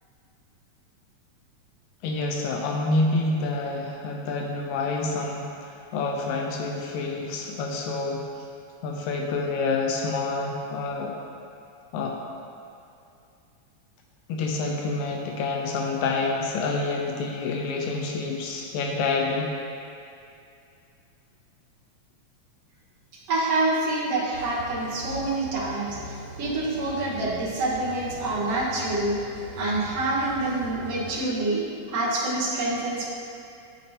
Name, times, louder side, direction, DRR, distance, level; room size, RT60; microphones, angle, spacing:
voice 1, 2.0-8.2 8.8-11.1 11.9-12.2 14.3-19.6, left 3 dB, 85° left, 0 dB, 1.9 m, -28 dB
voice 2, 23.3-29.2 29.6-33.1, right 2 dB, 65° right, -6 dB, 2.1 m, -27 dB
sound 1, 24.3-31.2, equal, 80° right, 3.1 m, -41 dB
10.5 x 4.1 x 2.8 m, 2.6 s
omnidirectional pair, 3.3 m